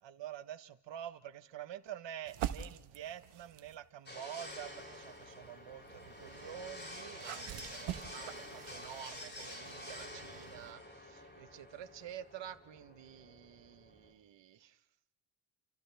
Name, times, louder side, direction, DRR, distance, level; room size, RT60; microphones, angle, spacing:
voice 1, 0.0-14.8, right 10 dB, 60° right, 11 dB, 1.3 m, -48 dB
sound 1, 2.3-3.8 4.5-10.7, right 11 dB, 85° right, 1.4 m, -46 dB
sound 2, 4.1-14.1, left 1 dB, 20° left, 7.7 m, -49 dB
30.0 x 27.5 x 3.5 m, 0.80 s
supercardioid pair, 65°, 49 cm